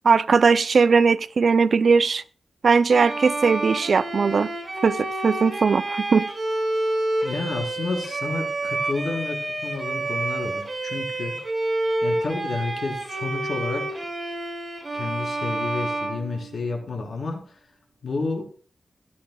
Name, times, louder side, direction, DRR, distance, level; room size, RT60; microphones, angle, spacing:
voice 1, 0.0-2.2 2.6-4.5 4.8-6.2, right 5 dB, 60° right, 0.5 m, -19 dB
Bowed string instrument, 2.9-17.0, right 2 dB, 30° right, 5.2 m, -29 dB
voice 2, 7.2-11.4 12.0-13.9 14.9-17.6 18.0-18.5, left 3 dB, 70° left, 4.0 m, -30 dB
16.5 x 13.0 x 2.3 m
wide cardioid pair, 160°, 0 cm